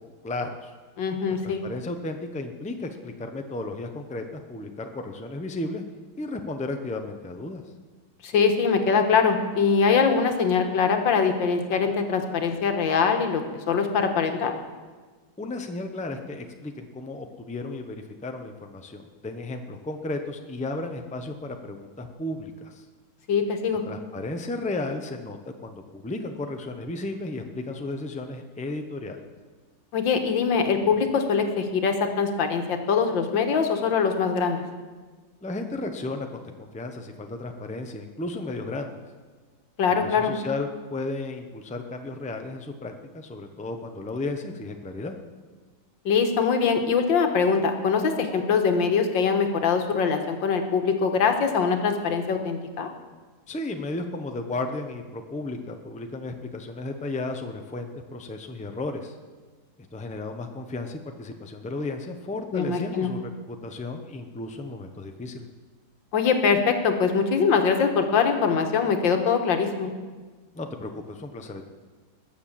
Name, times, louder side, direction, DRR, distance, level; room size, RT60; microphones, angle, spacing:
voice 1, 0.2-0.7 1.3-5.8 6.2-7.6 15.4-22.8 23.8-29.2 35.4-39.0 40.0-45.2 53.5-59.2 59.9-65.5 70.5-71.6, left 2 dB, 5° left, 5 dB, 0.6 m, -34 dB
voice 2, 1.0-1.6 8.2-13.4 13.7-14.5 23.3-23.8 29.9-34.6 39.8-40.3 46.1-52.9 62.5-63.1 66.1-69.9, left 5 dB, 90° left, 5 dB, 2.0 m, -23 dB
20.5 x 6.9 x 7.6 m, 1.4 s
omnidirectional pair, 2.0 m